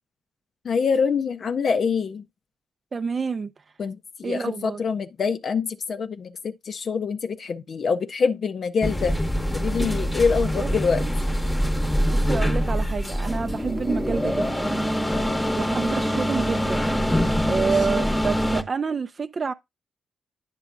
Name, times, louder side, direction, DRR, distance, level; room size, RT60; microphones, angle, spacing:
voice 1, 0.6-2.3 3.8-9.2 9.5-11.0 15.1-15.5 17.5-18.0, left 5 dB, 55° left, 0.4 m, -25 dB
voice 2, 2.9-3.5 4.2-4.8 10.6-10.7 11.0-11.1 12.1-14.8 15.5-16.9 17.5-19.5, right 5 dB, 45° right, 0.3 m, -28 dB
sound 1, 8.8-18.6, equal, 15° left, 0.8 m, -24 dB
8.9 x 6.0 x 2.5 m
hypercardioid pair, 45°, 0 cm